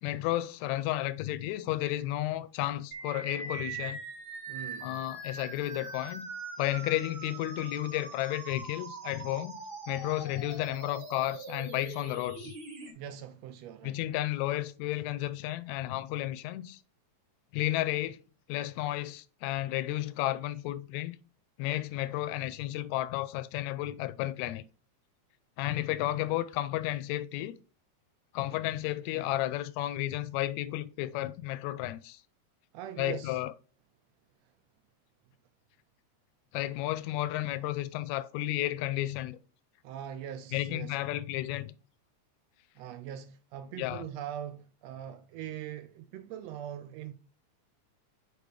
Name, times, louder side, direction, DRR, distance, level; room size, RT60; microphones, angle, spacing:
voice 1, 0.0-4.0 4.8-6.3 6.6-9.6 9.9-12.6 13.8-16.8 17.5-18.2 18.5-21.2 21.6-24.6 25.6-27.5 28.3-32.2 33.0-33.5 36.5-39.4 40.5-41.7 43.8-44.0, left 15 dB, 80° left, 1.8 m, -32 dB
sound 1, 2.9-12.9, right 4 dB, 40° right, 1.6 m, -42 dB
voice 2, 4.5-5.0 12.8-14.0 32.7-33.4 39.8-41.0 42.8-47.1, right 10 dB, 80° right, 1.5 m, -42 dB
5.3 x 4.5 x 4.9 m
omnidirectional pair, 3.4 m